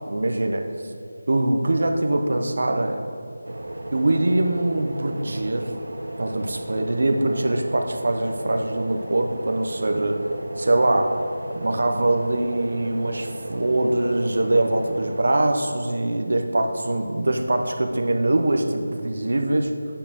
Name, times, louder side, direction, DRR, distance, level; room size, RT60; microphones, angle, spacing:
voice 1, 0.1-0.7 1.3-3.0 3.9-5.7 6.2-10.2 10.6-11.2 11.5-19.7, right 2 dB, 50° right, 4 dB, 0.5 m, -23 dB
sound 1, 3.4-15.2, right 1 dB, 85° right, 0.7 m, -35 dB
8.4 x 5.2 x 2.9 m, 2.4 s
figure-of-eight pair, 180°, 0 cm